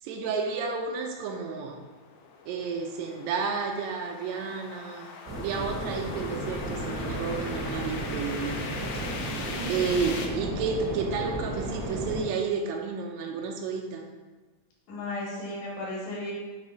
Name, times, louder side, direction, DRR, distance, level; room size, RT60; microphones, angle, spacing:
voice 1, 0.0-1.8 2.5-9.3 9.7-14.0, right 5 dB, 80° right, 1 dB, 1.8 m, -31 dB
sound 1, 1.2-10.3, left 4 dB, 90° left, 1.3 m, -41 dB
sound 2, 5.3-12.2, right 1 dB, 55° right, 1.0 m, -34 dB
voice 2, 9.4-10.1 14.9-16.3, left 1 dB, 75° left, -5 dB, 2.8 m, -35 dB
5.5 x 3.4 x 5.2 m, 1.3 s
omnidirectional pair, 3.4 m